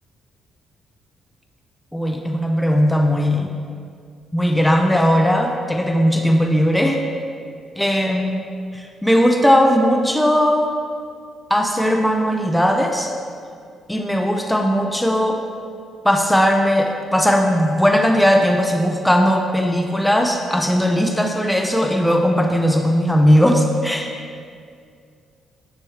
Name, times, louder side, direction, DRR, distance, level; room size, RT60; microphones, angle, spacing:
voice 1, 1.9-3.5 4.3-7.0 7.8-8.4 8.7-10.7 11.5-13.1 13.9-15.4 16.0-24.1, equal, 5° left, 3 dB, 0.5 m, -18 dB
9.8 x 3.5 x 3.1 m, 2.2 s
cardioid pair, 90°, 0 cm